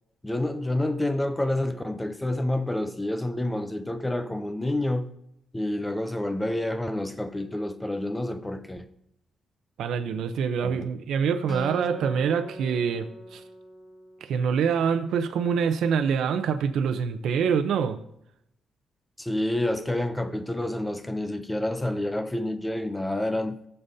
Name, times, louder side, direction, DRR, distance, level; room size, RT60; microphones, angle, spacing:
voice 1, 0.2-5.1 5.5-8.9 10.6-10.9 19.2-23.6, left 1 dB, 10° left, 0.6 m, -28 dB
voice 2, 9.8-13.4 14.2-18.0, right 6 dB, 80° right, 0.7 m, -25 dB
Acoustic guitar, 11.5-14.9, equal, 30° left, 1.8 m, -41 dB
19.0 x 6.9 x 2.8 m
cardioid pair, 150°, 0 cm